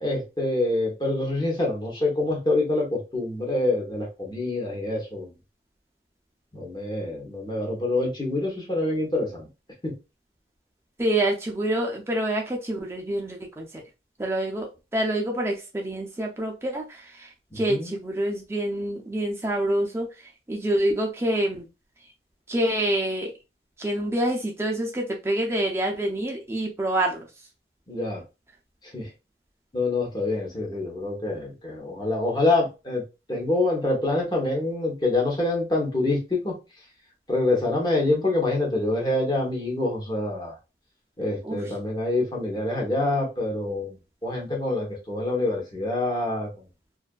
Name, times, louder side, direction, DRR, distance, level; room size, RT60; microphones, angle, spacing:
voice 1, 0.0-5.3 6.5-9.5 9.8-9.9 17.5-17.9 27.9-28.2 28.9-29.1 29.7-33.0 33.3-36.6 37.3-40.5 41.2-44.0 44.2-46.5, left 2 dB, 25° left, -2 dB, 0.8 m, -26 dB
voice 2, 11.0-13.8 14.2-21.7 22.5-23.3 23.8-27.3 41.4-41.7, right 1 dB, 15° right, 0 dB, 0.4 m, -27 dB
2.6 x 2.4 x 2.2 m, 0.27 s
head